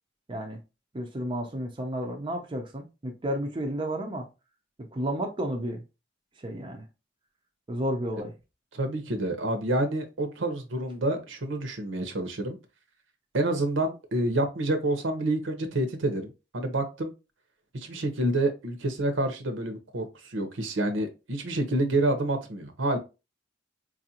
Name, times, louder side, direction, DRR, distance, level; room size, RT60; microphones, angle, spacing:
voice 1, 0.3-0.6 0.9-4.3 4.9-5.8 6.4-6.8 7.7-8.3, right 1 dB, 25° right, 0.5 m, -32 dB
voice 2, 8.7-12.6 13.3-17.1 17.7-23.0, right 1 dB, 75° right, 0.8 m, -28 dB
4.6 x 2.5 x 2.8 m
head